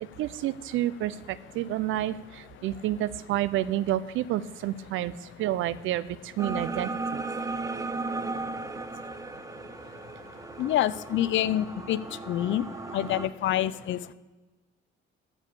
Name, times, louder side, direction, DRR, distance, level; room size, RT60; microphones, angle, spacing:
voice 1, 0.0-7.2, right 13 dB, 85° right, 17 dB, 0.5 m, -30 dB
sound 1, 6.4-13.3, right 3 dB, 15° right, 0.6 m, -36 dB
voice 2, 10.6-12.0 12.3-12.7 12.9-14.0, left 12 dB, 70° left, 16 dB, 0.6 m, -26 dB
13.5 x 4.9 x 6.8 m, 1.3 s
cardioid pair, 90°, 20 cm